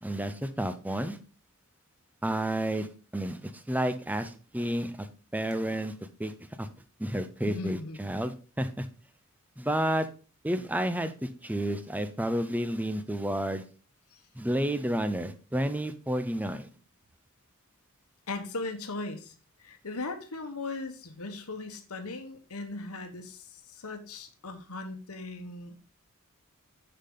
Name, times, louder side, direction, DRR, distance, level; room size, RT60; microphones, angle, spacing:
voice 1, 0.0-1.2 2.2-2.9 3.1-5.1 5.3-5.9 6.2-6.3 6.6-6.7 7.0-8.9 9.6-10.1 10.4-13.6 14.3-16.7, right 1 dB, 5° right, 10 dB, 0.6 m, -30 dB
voice 2, 7.5-8.0 14.1-14.2 18.3-19.3 19.6-25.8, left 3 dB, 90° left, 7 dB, 1.2 m, -38 dB
6.9 x 5.8 x 3.8 m, 0.36 s
head